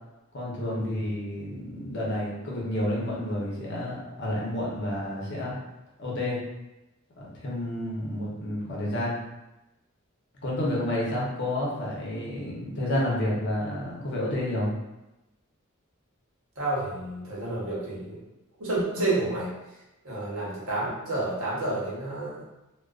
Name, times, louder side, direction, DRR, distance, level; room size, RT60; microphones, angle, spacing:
voice 1, 0.3-5.5 6.0-6.4 7.2-9.2 10.4-14.7, left 1 dB, 55° left, -5 dB, 0.7 m, -30 dB
voice 2, 16.6-18.2 18.6-19.5 20.0-22.5, right 2 dB, 80° right, -6 dB, 0.9 m, -30 dB
2.3 x 2.2 x 2.3 m, 0.97 s
head